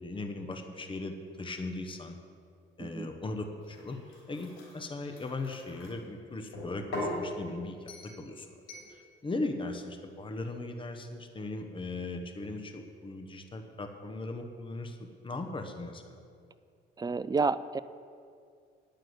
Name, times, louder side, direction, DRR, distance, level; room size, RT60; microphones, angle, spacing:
voice 1, 0.0-2.2 2.8-4.0 4.3-8.5 8.9-16.2, left 2 dB, 25° left, 5 dB, 1.0 m, -38 dB
sound 1, 3.6-5.9 6.5-7.2 7.9-8.2 8.7-8.9, left 1 dB, 75° left, 3.3 m, -40 dB
voice 2, 17.0-17.8, right 4 dB, 20° right, 15 dB, 0.3 m, -30 dB
9.4 x 6.8 x 7.9 m, 2.3 s
cardioid pair, 90°, 20 cm